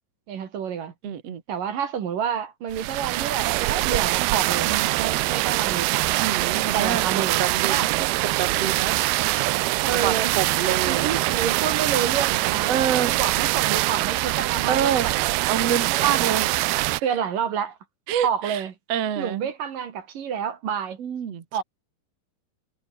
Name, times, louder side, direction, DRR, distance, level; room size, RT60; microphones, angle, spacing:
voice 1, 0.3-0.9 1.5-4.7 5.0-6.2 6.7-7.9 9.8-10.4 10.9-12.8 13.1-15.2 15.9-16.4 17.0-17.8 18.2-18.7 19.2-21.0 21.5-21.6, right 8 dB, 65° right, 3.8 m, -29 dB
voice 2, 1.0-1.4 4.7-5.0 6.2-7.9 8.2-8.9 9.9-11.1 12.7-13.1 14.7-15.1 15.5-16.5 18.1-18.6 18.9-19.5 21.0-21.6, right 9 dB, 45° right, 2.8 m, -27 dB
sound 1, 2.7-17.0, right 20 dB, 90° right, 2.6 m, -23 dB
omnidirectional pair, 4.4 m